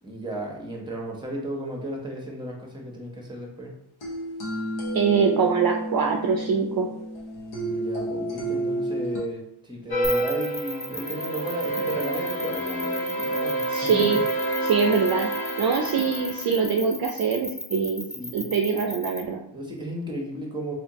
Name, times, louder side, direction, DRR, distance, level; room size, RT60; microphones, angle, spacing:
voice 1, 0.0-3.7 7.7-14.2 18.2-18.5 19.5-20.7, right 1 dB, 10° right, 0 dB, 1.1 m, -34 dB
sound 1, 4.0-9.2, right 1 dB, 75° left, 1.1 m, -31 dB
voice 2, 4.9-6.9 13.7-14.2 14.7-15.3 15.6-18.1 18.3-19.4, right 5 dB, 50° right, 2 dB, 0.5 m, -23 dB
sound 2, 9.9-16.8, right 1 dB, 50° left, 1.2 m, -28 dB
sound 3, 10.0-19.2, left 1 dB, 10° left, 0.8 m, -35 dB
3.3 x 2.7 x 3.0 m, 0.74 s
cardioid pair, 50°, 48 cm